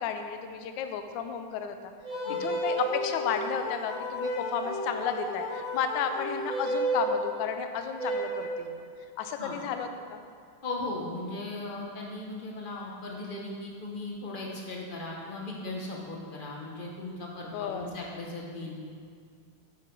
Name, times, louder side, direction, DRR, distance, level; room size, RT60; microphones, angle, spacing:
voice 1, 0.0-1.8 2.4-8.8 9.2-10.2 17.4-17.9, left 7 dB, 75° left, 7 dB, 1.2 m, -33 dB
sound 1, 2.0-3.0 4.2-4.8 6.5-7.1 8.0-8.6, right 2 dB, 75° right, 1.9 m, -31 dB
sound 2, 2.1-7.0, left 3 dB, 90° left, 1.6 m, -37 dB
voice 2, 10.6-18.9, left 2 dB, 55° left, -2 dB, 0.5 m, -37 dB
8.9 x 5.7 x 4.5 m, 2.2 s
omnidirectional pair, 2.3 m